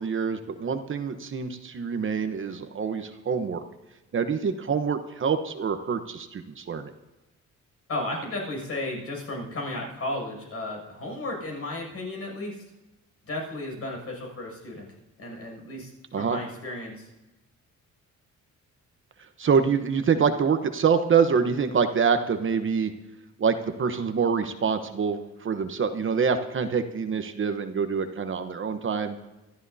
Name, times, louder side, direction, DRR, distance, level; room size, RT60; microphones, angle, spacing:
voice 1, 0.0-3.6 4.1-6.9 16.1-16.4 19.4-22.9 23.4-29.2, right 6 dB, 45° right, 8 dB, 1.0 m, -25 dB
voice 2, 7.9-12.6 13.2-14.9 15.2-17.1, left 2 dB, 55° left, 0 dB, 6.7 m, -34 dB
26.5 x 13.0 x 2.8 m, 1.0 s
cardioid pair, 125°, 29 cm